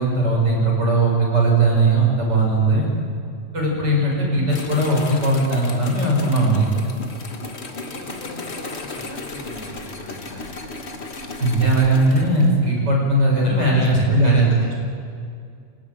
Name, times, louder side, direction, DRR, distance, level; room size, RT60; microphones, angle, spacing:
voice 1, 0.0-2.9 3.5-6.7 11.4-14.5, right 2 dB, 30° right, -2 dB, 6.7 m, -18 dB
sound 1, 4.5-12.5, left 3 dB, 40° left, 1.0 m, -34 dB
voice 2, 7.7-10.6 13.4-14.7, left 2 dB, 60° left, 0 dB, 5.9 m, -36 dB
26.0 x 18.5 x 9.2 m, 2.3 s
omnidirectional pair, 3.6 m